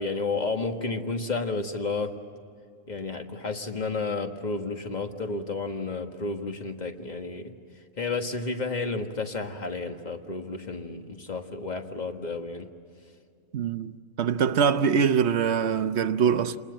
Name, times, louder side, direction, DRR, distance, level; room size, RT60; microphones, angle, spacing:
voice 1, 0.0-2.1 2.9-7.5 8.0-12.7, left 3 dB, 35° left, 1.6 m, -31 dB
voice 2, 13.5-16.6, right 7 dB, 65° right, 1.0 m, -24 dB
28.5 x 20.5 x 7.8 m
omnidirectional pair, 1.3 m